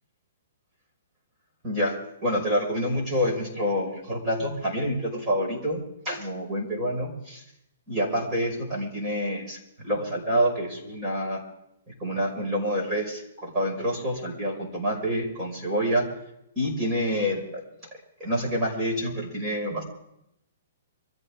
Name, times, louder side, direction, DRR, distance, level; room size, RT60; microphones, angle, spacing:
voice 1, 1.6-1.9 2.2-7.4 7.9-9.6 9.8-11.4 12.0-16.1 16.6-17.6 18.2-19.8, equal, 20° right, -2 dB, 5.5 m, -27 dB
25.0 x 15.0 x 3.6 m, 0.80 s
hypercardioid pair, 165°, 0 cm